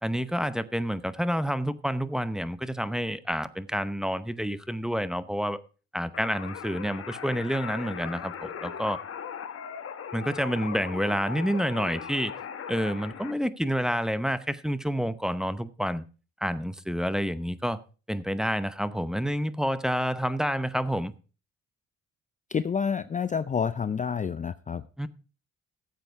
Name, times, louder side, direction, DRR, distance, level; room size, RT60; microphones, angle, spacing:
voice 1, 0.0-5.6 5.9-9.0 10.1-12.3 12.7-16.0 16.4-17.8 18.1-21.1 25.0-25.1, equal, ahead, 0.8 m, -29 dB
sound 1, 6.1-13.3, left 7 dB, 50° left, 1.3 m, -38 dB
voice 2, 22.5-24.8, left 6 dB, 25° left, 0.5 m, -28 dB
14.0 x 7.7 x 4.6 m
cardioid pair, 90°, 30 cm